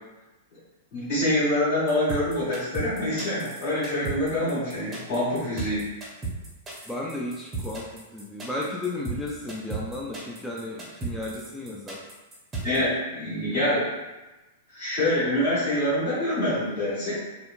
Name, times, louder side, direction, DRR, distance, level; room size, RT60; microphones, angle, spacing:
voice 1, 0.9-5.8 12.6-13.9 14.7-17.2, left 1 dB, 40° left, -11 dB, 1.3 m, -25 dB
sound 1, 1.9-12.8, right 4 dB, 20° right, 0.7 m, -35 dB
voice 2, 6.9-12.0 12.8-12.9, left 2 dB, 5° left, -4 dB, 0.3 m, -34 dB
2.8 x 2.1 x 2.4 m, 1.1 s
figure-of-eight pair, 100°, 0 cm